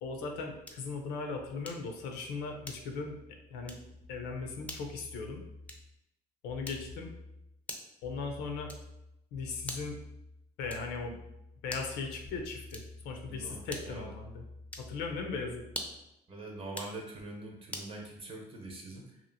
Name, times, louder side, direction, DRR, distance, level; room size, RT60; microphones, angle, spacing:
voice 1, 0.0-3.2 3.5-3.8 4.1-5.4 6.4-7.1 8.0-8.7 9.3-10.0 10.6-11.2 11.6-14.4 14.8-15.7, left 4 dB, 90° left, 3 dB, 0.5 m, -38 dB
sound 1, 0.6-1.0 1.6-2.0 2.6-3.1 3.6-3.9 4.6-4.9 5.6-6.0 6.6-7.1 7.7-8.0 8.7-9.0 9.6-10.0 10.7-11.0 11.6-12.0 12.7-13.1 13.7-14.1 14.7-15.0 15.6-16.1 16.6-17.0 17.7-18.0, left 1 dB, 10° left, 0.4 m, -44 dB
voice 2, 13.3-14.1 16.3-19.2, right 2 dB, 35° right, 0 dB, 0.7 m, -44 dB
2.9 x 2.4 x 2.6 m, 0.86 s
cardioid pair, 110°, 17 cm